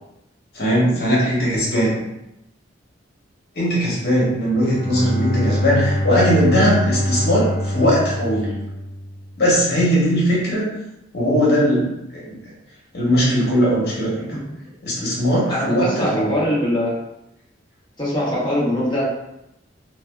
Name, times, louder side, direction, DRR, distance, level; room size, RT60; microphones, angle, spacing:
voice 1, 0.5-2.0 3.6-8.5 9.4-10.7 11.1-12.4 12.9-14.3 14.8-16.3, equal, 55° left, -5 dB, 0.9 m, -19 dB
Bowed string instrument, 4.5-9.5, equal, 45° right, 0.8 m, -24 dB
voice 2, 15.5-16.9 18.0-19.0, equal, 25° left, -6 dB, 0.7 m, -22 dB
2.6 x 2.2 x 2.2 m, 0.87 s
head